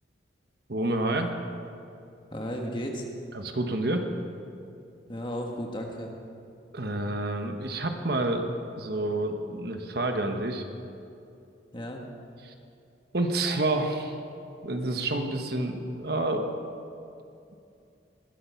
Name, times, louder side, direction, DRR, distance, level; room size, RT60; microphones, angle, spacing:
voice 1, 0.7-1.3 3.3-4.1 6.7-8.4 8.8-10.6 12.4-12.5 13.1-14.2 14.6-16.5, right 2 dB, 55° right, 5 dB, 1.1 m, -28 dB
voice 2, 2.3-3.1 5.1-6.1 11.7-12.0, equal, 25° left, 1 dB, 1.5 m, -34 dB
21.0 x 8.7 x 5.7 m, 2.6 s
head